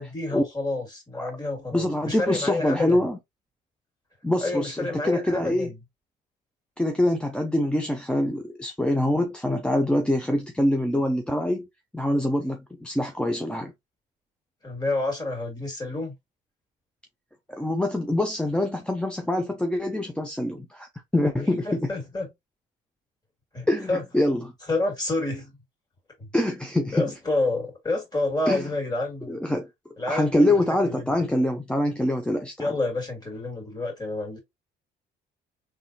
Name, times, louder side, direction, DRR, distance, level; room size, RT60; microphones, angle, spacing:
voice 1, 0.0-3.0 4.4-5.8 14.6-16.1 21.4-22.3 23.5-24.0 24.3-24.4 24.7-25.5 26.2-26.3 26.9-29.4 30.0-30.5 30.8-31.2 32.6-34.4, left 2 dB, 25° left, 2.5 m, -29 dB
voice 2, 1.7-3.2 4.2-5.7 6.8-11.7 11.9-13.7 17.5-21.9 23.7-24.5 26.3-27.1 28.5-28.7 29.3-29.7 30.1-32.7, left 1 dB, 5° left, 0.6 m, -25 dB
4.1 x 3.3 x 2.8 m
cardioid pair, 110°, 17 cm